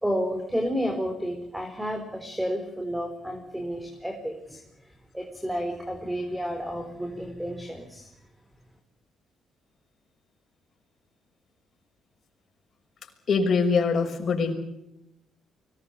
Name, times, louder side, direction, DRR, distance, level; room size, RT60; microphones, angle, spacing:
voice 1, 0.0-8.1, equal, 5° right, 5 dB, 4.1 m, -31 dB
voice 2, 13.3-14.5, left 5 dB, 50° left, 3 dB, 6.4 m, -23 dB
24.5 x 20.0 x 8.5 m, 0.85 s
cardioid pair, 90°, 0 cm